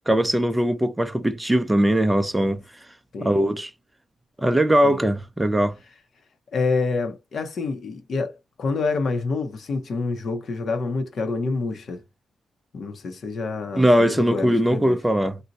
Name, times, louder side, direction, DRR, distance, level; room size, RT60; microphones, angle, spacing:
voice 1, 0.1-2.6 3.2-3.7 4.4-5.8 13.8-15.4, equal, 10° right, 0.5 m, -20 dB
voice 2, 3.1-3.4 4.8-5.0 6.5-12.0 12.7-15.0, left 3 dB, 55° left, 0.7 m, -27 dB
2.6 x 2.1 x 3.9 m
cardioid pair, 105°, 0 cm